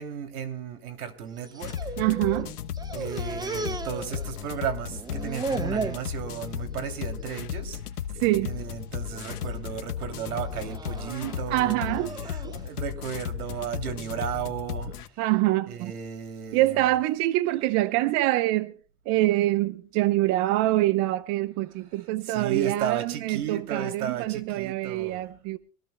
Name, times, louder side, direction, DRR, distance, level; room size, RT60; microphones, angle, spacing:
voice 1, 0.0-1.9 2.9-7.8 8.4-11.9 12.3-14.9 15.7-16.9 22.3-25.2, right 8 dB, 75° right, 3.0 m, -34 dB
sound 1, 1.4-2.5 2.7-4.6 4.9-6.1 6.5-6.9 7.2-7.4 8.3-8.7 9.2-9.6 10.4-12.6, right 4 dB, 10° right, 0.9 m, -35 dB
sound 2, 1.6-15.1, left 9 dB, 90° left, 1.2 m, -35 dB
voice 2, 2.0-2.5 2.9-3.0 8.2-8.6 11.2-12.1 12.4-12.6 15.2-15.9 16.5-18.7 19.1-25.6, right 17 dB, 40° right, 0.8 m, -25 dB
25.0 x 18.5 x 2.2 m
hypercardioid pair, 120°, 45 cm